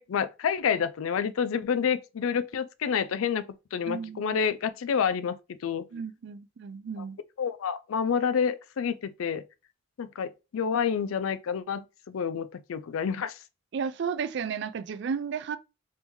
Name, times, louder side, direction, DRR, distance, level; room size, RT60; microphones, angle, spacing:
voice 1, 0.0-3.4 3.7-5.4 5.6-5.8 7.4-9.4 10.0-13.4, left 7 dB, 90° left, 0.4 m, -28 dB
voice 2, 3.9-4.4 5.9-7.2 13.7-15.6, right 6 dB, 55° right, 0.3 m, -33 dB
3.6 x 2.6 x 3.0 m
head